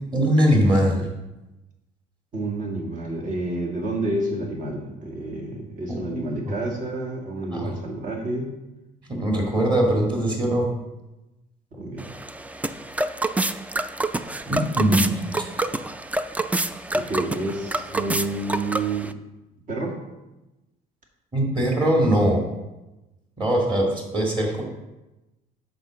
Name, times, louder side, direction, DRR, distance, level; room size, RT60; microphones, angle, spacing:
voice 1, 0.1-1.1 6.0-6.5 7.5-7.7 9.1-10.7 14.5-15.2 21.3-22.4 23.4-24.6, right 1 dB, 30° right, -1 dB, 2.2 m, -21 dB
voice 2, 2.3-8.5 11.7-12.1 16.9-19.1 19.7-20.0 23.8-23.9, right 2 dB, 50° right, 0 dB, 2.1 m, -29 dB
sound 1, 12.0-19.1, right 2 dB, 10° right, 0.3 m, -28 dB
7.7 x 4.4 x 6.3 m, 1.0 s
cardioid pair, 110°, 17 cm